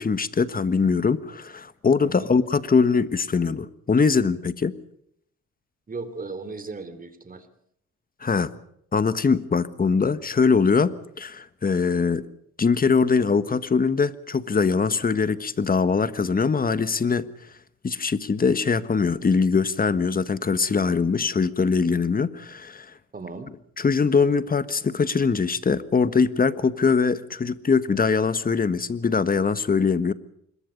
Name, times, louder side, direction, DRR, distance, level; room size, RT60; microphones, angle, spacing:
voice 1, 0.0-4.7 8.2-8.5 8.9-12.2 12.6-17.3 17.8-22.9 23.8-30.1, left 5 dB, 30° left, 13 dB, 1.5 m, -22 dB
voice 2, 2.0-2.3 5.9-7.5 23.1-23.5, right 3 dB, 30° right, 11 dB, 3.3 m, -36 dB
25.5 x 22.0 x 5.3 m, 0.71 s
cardioid pair, 90°, 30 cm